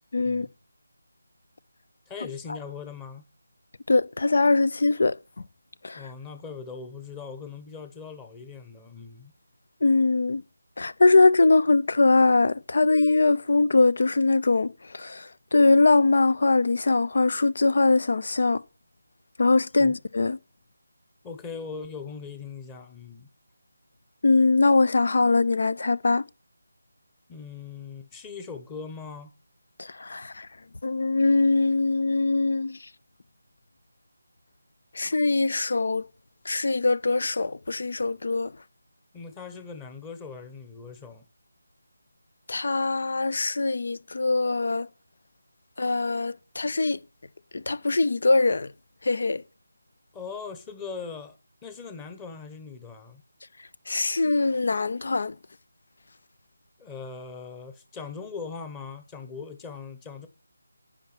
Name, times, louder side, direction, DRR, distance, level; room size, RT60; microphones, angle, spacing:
voice 1, 0.1-0.5 3.9-5.2 5.8-6.1 9.8-10.4 10.8-18.6 19.4-20.4 24.2-26.2 29.8-30.5 30.8-32.8 34.9-36.0 36.5-38.5 42.5-44.9 45.8-47.0 47.5-48.7 49.0-49.4 53.9-55.3, left 3 dB, 60° left, 0.6 m, -22 dB
voice 2, 2.1-3.2 5.9-9.3 19.8-20.0 21.2-23.3 27.3-29.3 39.1-41.3 50.1-51.4 51.6-53.2 56.8-60.3, left 5 dB, 10° left, 1.0 m, -40 dB
10.0 x 7.5 x 5.9 m
figure-of-eight pair, 160°, 0 cm